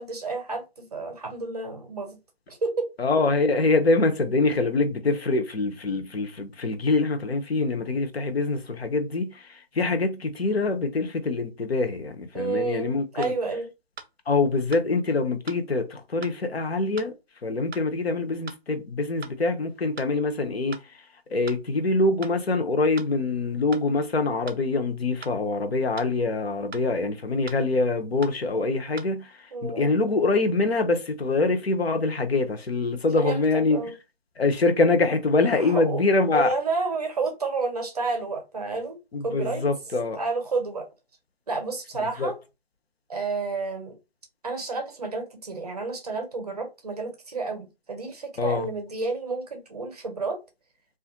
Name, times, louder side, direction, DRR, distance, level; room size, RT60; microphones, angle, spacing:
voice 1, 0.0-2.2 2.5-2.9 12.3-13.7 29.5-29.9 33.2-33.9 35.5-36.0 36.3-39.0 39.2-39.6 40.1-40.9 41.5-42.3 43.1-43.9 44.4-50.4, right 3 dB, 40° right, 0.7 m, -30 dB
voice 2, 3.0-13.3 14.3-17.1 17.4-20.8 21.3-29.3 29.6-33.8 34.4-36.5 39.1-40.2 42.2-42.3 48.4-48.7, left 3 dB, 80° left, 0.7 m, -24 dB
sound 1, 12.6-12.7 13.2-13.4 14.0-14.1 14.7-14.9 15.5-15.6 16.2-16.4 17.0-17.1 17.7-17.9 18.5-18.6 19.2-19.4 20.0-20.1 20.7-20.9 21.5-21.6 22.2-22.4 23.0-23.1 23.7-23.9 24.5-24.6 25.2-25.4 26.0-26.1 26.7-26.9 27.5-27.6 28.2-28.4 29.0-29.1, right 5 dB, 80° right, 0.5 m, -41 dB
2.4 x 2.4 x 2.6 m
figure-of-eight pair, 155°, 30 cm